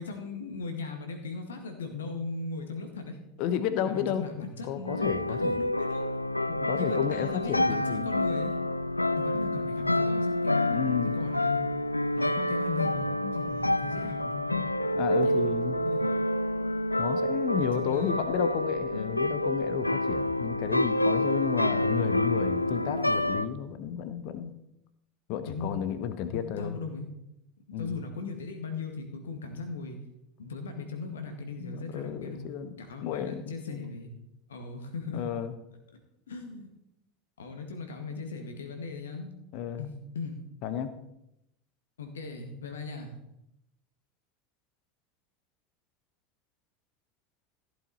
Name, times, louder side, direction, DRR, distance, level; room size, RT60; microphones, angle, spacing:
voice 1, 0.0-3.2 3.8-6.1 6.7-8.6 9.2-10.7 11.0-11.6 12.1-14.6 15.2-15.4 15.9-16.0 16.9-17.0 17.6-18.2 25.5-25.7 26.3-27.1 27.8-30.0 30.4-32.5 32.8-34.1 34.5-35.2 36.3-36.7 37.4-39.3 39.8-40.4 42.0-43.1, left 3 dB, 70° left, 5 dB, 2.0 m, -38 dB
voice 2, 3.4-4.2 4.6-5.6 6.5-8.1 10.6-11.1 14.9-15.8 17.0-24.5 25.3-26.8 27.7-27.9 31.6-32.7 33.0-33.9 35.1-35.5 39.5-39.9 40.6-40.9, left 9 dB, 50° left, 11 dB, 1.1 m, -32 dB
sound 1, 4.9-23.4, left 1 dB, 85° left, 0.4 m, -28 dB
15.0 x 8.3 x 4.2 m, 0.84 s
figure-of-eight pair, 75°, 0 cm